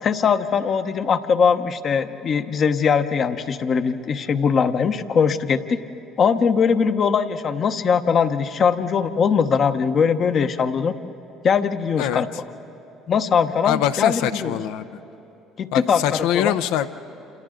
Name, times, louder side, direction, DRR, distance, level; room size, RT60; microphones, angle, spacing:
voice 1, 0.0-5.8 6.2-11.0 11.4-12.3 13.1-14.6 15.6-16.5, left 6 dB, 50° left, 9 dB, 0.9 m, -21 dB
voice 2, 13.6-14.9 15.7-16.9, left 11 dB, 75° left, 12 dB, 0.6 m, -23 dB
28.5 x 28.0 x 3.8 m, 2.9 s
hypercardioid pair, 65°, 0 cm